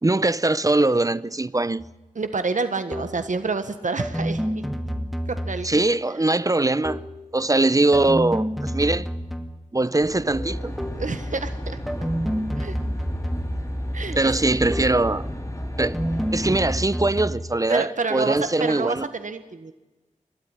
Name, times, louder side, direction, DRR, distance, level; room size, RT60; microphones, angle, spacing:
voice 1, 0.0-1.8 5.6-7.0 7.3-9.1 9.7-10.7 14.2-15.3 15.8-16.0 16.3-19.1, right 2 dB, 25° right, 0.7 m, -21 dB
sound 1, 1.8-2.0 2.9-3.3 4.0-5.9 6.8-7.3 7.9-9.7 10.8-11.2 11.9-13.8 14.7-15.1 15.8-17.6, equal, ahead, 2.2 m, -29 dB
voice 2, 2.1-4.6 5.3-5.8 11.0-12.1 12.6-12.8 13.9-14.3 17.7-19.7, right 4 dB, 70° right, 1.5 m, -28 dB
Aircraft, 10.0-16.7, equal, 25° left, 4.4 m, -31 dB
29.5 x 12.5 x 9.9 m
wide cardioid pair, 70°, 13 cm